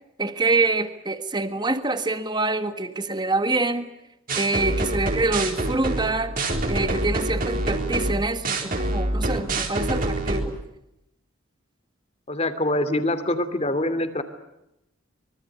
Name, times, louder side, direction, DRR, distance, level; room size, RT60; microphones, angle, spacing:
voice 1, 0.2-3.9 4.4-6.4 6.7-10.6, right 3 dB, 20° right, 9 dB, 1.6 m, -25 dB
sound 1, 4.3-10.4, right 2 dB, 45° right, 4.1 m, -26 dB
voice 2, 12.3-14.2, left 1 dB, 30° left, 11 dB, 2.7 m, -24 dB
25.0 x 25.0 x 9.6 m, 0.85 s
head